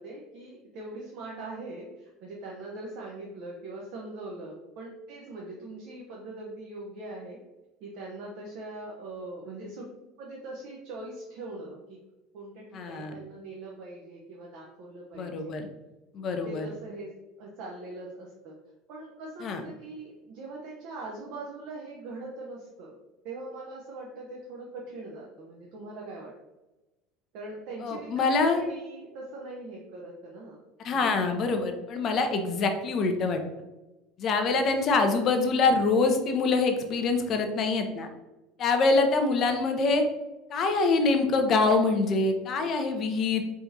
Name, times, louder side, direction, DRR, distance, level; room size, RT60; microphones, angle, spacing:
voice 1, 0.0-7.4 7.8-9.9 10.2-12.0 12.3-15.6 16.4-17.1 17.4-18.6 18.9-23.0 23.2-26.3 27.3-30.6 30.9-31.1, right 2 dB, 55° right, -3 dB, 0.8 m, -41 dB
voice 2, 12.7-13.2 15.2-15.7 16.1-16.7 19.4-19.6 27.8-28.6 30.8-33.4 34.2-38.1 38.6-40.0 40.5-43.4, left 3 dB, 40° left, 6 dB, 0.6 m, -25 dB
4.5 x 3.6 x 2.7 m, 1.1 s
figure-of-eight pair, 70°, 0 cm